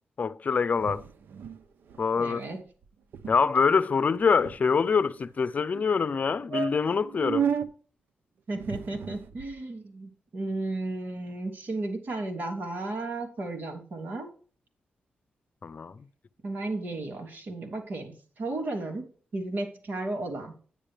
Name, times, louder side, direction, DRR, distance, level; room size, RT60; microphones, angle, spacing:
voice 1, 0.2-1.0 2.0-2.4 3.3-7.5 15.6-16.0, left 5 dB, 50° left, 0.6 m, -25 dB
sound 1, 0.8-1.6 1.9-2.1 2.3-2.6 2.8-2.9 3.1-3.4 4.0-5.1 5.7-5.8 6.2-6.3 6.5-7.7 8.5-9.5, right 7 dB, 85° right, 0.7 m, -33 dB
voice 2, 2.2-2.6 8.5-14.3 16.4-20.5, right 2 dB, 65° right, 3.0 m, -34 dB
10.0 x 9.8 x 3.4 m
cardioid pair, 75°, 3 cm